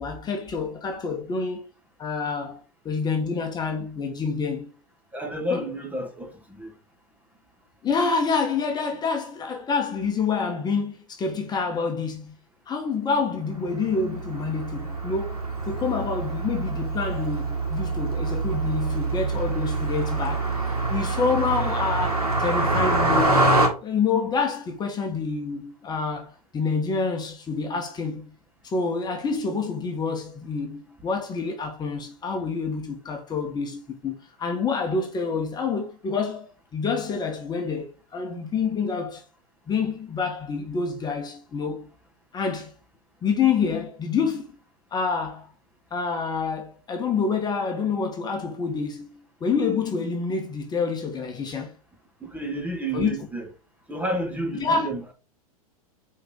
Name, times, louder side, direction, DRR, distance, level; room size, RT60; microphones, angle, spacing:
voice 1, 0.0-1.7 2.0-2.6 2.8-4.7 5.5-5.6 7.8-12.3 12.7-20.5 20.9-23.3 23.8-28.3 28.6-34.1 34.4-39.2 39.7-41.9 42.3-42.7 43.2-44.5 44.9-45.5 45.9-51.7 52.9-53.1 54.6-54.9, left 5 dB, 20° left, 1.4 m, -27 dB
voice 2, 5.1-6.7 52.2-53.5 53.9-55.1, right 1 dB, 10° right, 1.5 m, -31 dB
Car passing by, 13.5-23.7, right 2 dB, 80° right, 2.4 m, -25 dB
5.6 x 4.4 x 3.8 m
figure-of-eight pair, 100°, 19 cm